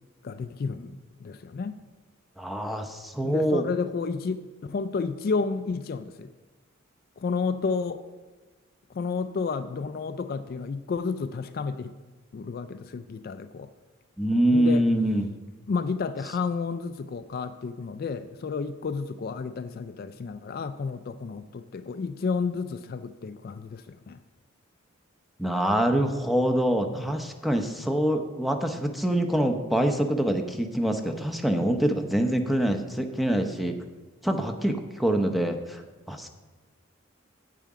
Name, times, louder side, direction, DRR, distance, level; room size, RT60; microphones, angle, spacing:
voice 1, 0.2-1.8 3.2-6.3 7.2-8.0 8.9-11.9 12.3-13.7 14.5-14.9 15.7-24.2, left 4 dB, 45° left, 11 dB, 0.3 m, -31 dB
voice 2, 2.4-3.6 14.2-15.3 25.4-33.7 34.2-35.8 36.1-36.3, right 1 dB, ahead, 4 dB, 0.7 m, -25 dB
9.0 x 8.4 x 4.9 m, 1.3 s
head